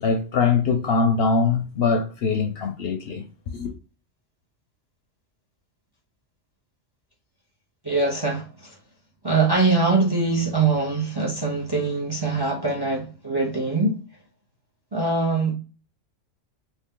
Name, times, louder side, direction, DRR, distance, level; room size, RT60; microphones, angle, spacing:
voice 1, 0.0-3.7, left 4 dB, 60° left, 0.7 m, -22 dB
voice 2, 7.8-8.7 9.2-14.0 14.9-15.5, right 3 dB, 25° right, 0.6 m, -23 dB
2.7 x 2.7 x 3.6 m
omnidirectional pair, 1.3 m